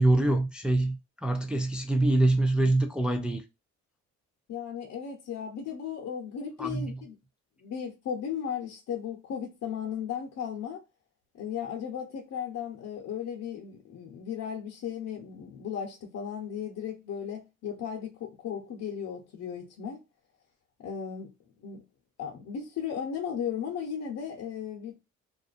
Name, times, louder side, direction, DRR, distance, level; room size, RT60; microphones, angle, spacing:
voice 1, 0.0-3.4 6.6-6.9, right 2 dB, 5° right, 0.4 m, -25 dB
voice 2, 4.5-7.2 7.6-10.8 11.3-20.0 20.8-21.3 21.6-21.8 22.2-24.9, left 8 dB, 60° left, 0.8 m, -36 dB
2.4 x 2.4 x 2.4 m
cardioid pair, 90°, 30 cm